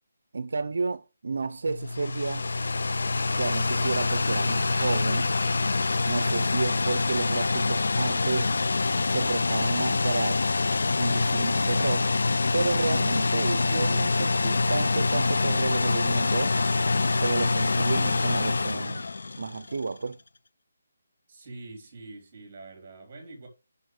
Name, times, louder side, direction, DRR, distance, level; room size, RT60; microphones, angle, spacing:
voice 1, 0.3-2.5 3.3-5.3 6.1-8.5 9.1-10.5 11.0-12.1 12.5-16.6 17.2-19.1 19.4-20.2, right 4 dB, 65° right, 0.5 m, -31 dB
sound 1, 1.7-19.8, left 3 dB, 75° left, 0.4 m, -25 dB
voice 2, 21.3-23.5, right 2 dB, 25° right, 3.3 m, -45 dB
7.9 x 5.5 x 4.7 m
hypercardioid pair, 175°, 0 cm